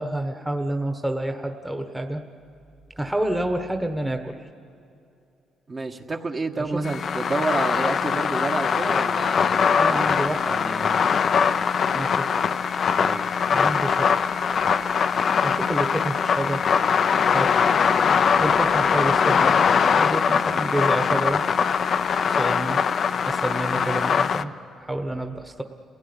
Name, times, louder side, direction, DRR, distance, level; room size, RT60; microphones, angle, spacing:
voice 1, 0.0-2.2 3.0-4.4 6.6-6.8 9.8-10.7 11.9-12.3 13.5-14.4 15.4-16.7 17.3-17.6 18.4-21.4 22.3-22.8 23.3-25.6, right 1 dB, 10° right, 5 dB, 1.3 m, -28 dB
voice 2, 5.7-10.9 13.0-13.3, right 3 dB, 35° right, 3 dB, 1.4 m, -30 dB
sound 1, 6.8-24.4, left 6 dB, 55° left, 0.6 m, -22 dB
29.0 x 16.0 x 9.8 m, 2.7 s
cardioid pair, 90°, 0 cm